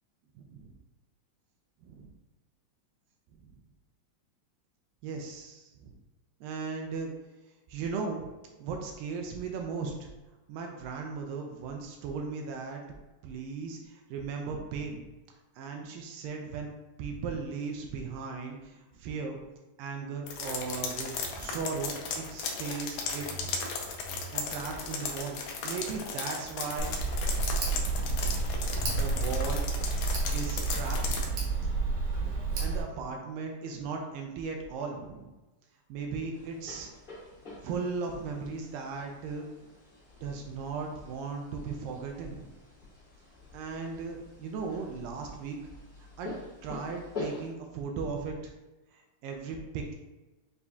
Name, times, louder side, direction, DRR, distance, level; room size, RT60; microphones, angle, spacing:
voice 1, 0.4-0.7 1.8-2.1 3.4-3.6 5.0-5.9 6.4-7.1 7.7-8.3 8.6-10.1 10.5-12.8 13.2-15.1 15.6-16.7 17.0-19.4 19.8-23.5 24.3-26.9 27.4-28.1 28.8-29.6 30.3-31.5 32.6-35.3 35.9-36.9 37.6-39.5 40.2-42.5 43.5-45.6 46.2-46.3 46.6-48.5 48.9-49.9, right 5 dB, 85° right, 2 dB, 2.2 m, -37 dB
sound 1, 20.3-31.3, left 4 dB, 90° left, 1.7 m, -36 dB
Tick, 26.8-32.8, right 3 dB, 65° right, 2.2 m, -30 dB
sound 2, 36.3-47.5, left 2 dB, 65° left, 0.8 m, -46 dB
6.8 x 2.7 x 2.3 m, 1.1 s
omnidirectional pair, 4.1 m